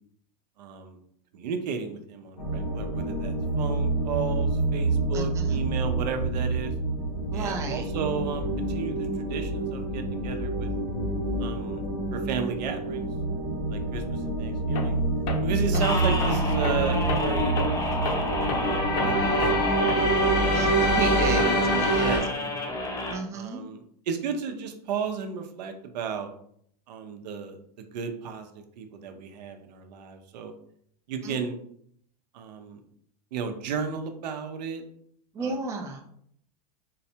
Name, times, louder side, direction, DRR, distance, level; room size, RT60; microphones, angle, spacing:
voice 1, 0.6-1.0 1.3-6.7 7.3-10.7 11.4-11.8 12.1-13.1 13.7-15.0 15.4-20.1 21.3-22.6 23.3-26.3 26.9-30.5 31.1-31.6 32.3-32.8 33.3-34.8 35.4-35.6, right 6 dB, 80° right, 6 dB, 0.6 m, -34 dB
sound 1, 2.4-22.2, right 1 dB, 85° left, 1.2 m, -26 dB
voice 2, 5.1-5.6 7.3-7.9 15.7-15.8 20.5-22.1 23.1-23.6 31.2-31.4 35.3-36.0, right 4 dB, 15° right, 2 dB, 0.4 m, -33 dB
Tools, 14.8-15.0 15.3-20.3, left 4 dB, 55° left, 0.7 m, -34 dB
sound 2, 15.8-23.1, left 2 dB, 15° left, 0.7 m, -31 dB
3.9 x 2.2 x 2.8 m, 0.66 s
supercardioid pair, 135°, 21 cm